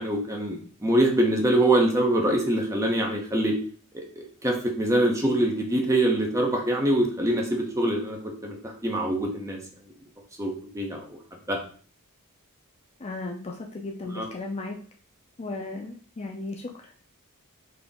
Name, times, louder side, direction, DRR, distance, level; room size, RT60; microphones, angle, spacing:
voice 1, 0.0-3.6 3.9-9.6 10.4-11.2 11.5-11.6 14.1-14.2, right 1 dB, 15° right, 1 dB, 0.7 m, -24 dB
voice 2, 13.0-14.8 15.4-16.9, left 2 dB, 25° left, 2 dB, 0.4 m, -35 dB
4.0 x 2.8 x 3.5 m, 0.43 s
head